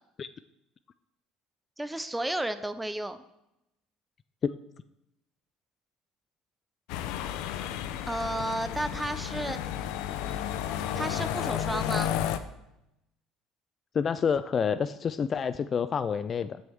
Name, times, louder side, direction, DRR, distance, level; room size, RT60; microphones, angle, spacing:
voice 1, 1.8-3.2 8.1-9.6 10.9-12.1, right 1 dB, 5° right, 11 dB, 0.7 m, -32 dB
sound 1, 6.9-12.4, left 10 dB, 80° left, 0.6 m, -32 dB
voice 2, 13.9-16.6, left 6 dB, 35° left, 14 dB, 0.3 m, -28 dB
14.0 x 6.3 x 3.5 m, 0.85 s
cardioid pair, 120°, 0 cm